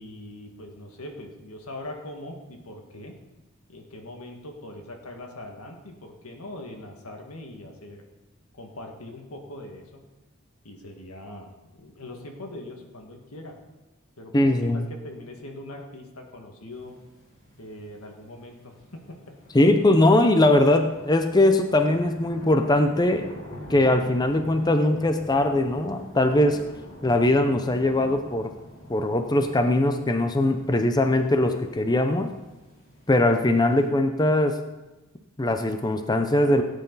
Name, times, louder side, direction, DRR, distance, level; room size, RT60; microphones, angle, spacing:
voice 1, 0.0-3.1 3.7-8.0 8.5-9.9 10.6-13.5 14.2-16.9 17.6-19.2, left 1 dB, 90° left, 2 dB, 1.9 m, -41 dB
voice 2, 14.3-14.9 19.5-23.3 23.7-26.6 27.0-28.5 28.9-32.3 33.1-34.6 35.4-36.6, left 1 dB, 20° left, 7 dB, 0.6 m, -21 dB
sound 1, 16.7-33.9, equal, 35° left, 4.7 m, -45 dB
17.0 x 9.1 x 4.0 m, 1.1 s
head